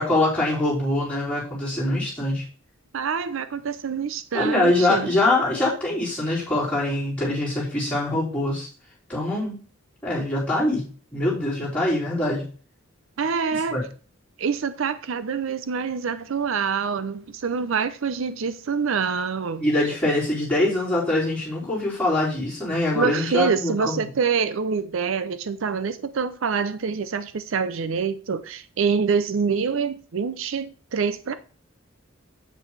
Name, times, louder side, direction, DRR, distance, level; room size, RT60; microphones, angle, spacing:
voice 1, 0.0-2.4 4.3-8.7 9.1-9.6 10.0-10.8 11.1-12.5 13.7-13.8 19.6-24.1, left 1 dB, 5° left, 4.3 m, -23 dB
voice 2, 2.9-5.1 13.2-13.8 14.4-19.7 22.9-31.3, right 5 dB, 65° right, 0.5 m, -26 dB
8.3 x 7.2 x 3.3 m
head